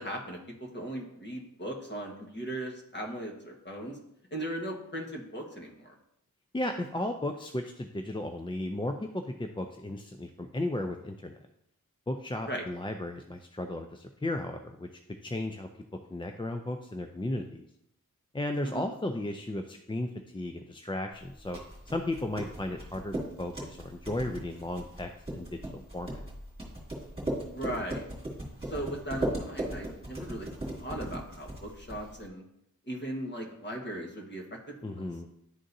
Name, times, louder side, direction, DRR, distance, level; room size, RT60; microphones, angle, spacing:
voice 1, 0.0-4.0 4.3-5.9 12.5-12.6 18.6-18.8 27.5-28.0 28.6-30.5 30.8-32.4 32.9-34.6 34.9-35.1, right 1 dB, 30° left, 0 dB, 1.3 m, -38 dB
voice 2, 6.5-11.4 12.1-14.9 15.2-15.7 16.1-17.7 18.3-21.6 21.9-26.2 34.8-35.3, left 1 dB, 15° left, 5 dB, 0.4 m, -35 dB
sound 1, 21.2-32.3, right 1 dB, 15° right, 2.3 m, -38 dB
11.0 x 3.7 x 2.6 m, 0.79 s
wide cardioid pair, 65°, 34 cm